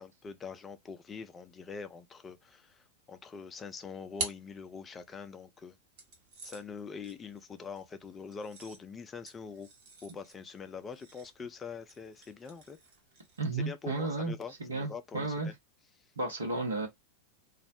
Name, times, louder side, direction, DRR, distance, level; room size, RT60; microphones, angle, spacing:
voice 1, 0.0-2.8 3.1-5.7 6.4-9.7 10.0-12.8 13.7-15.5, left 5 dB, 20° left, 0.4 m, -44 dB
sound 1, 3.5-5.3 6.0-13.6, right 3 dB, 50° right, 0.9 m, -47 dB
voice 2, 13.4-15.5 16.2-16.9, right 3 dB, 70° right, 0.9 m, -33 dB
2.3 x 2.0 x 2.7 m
figure-of-eight pair, 90°, 0 cm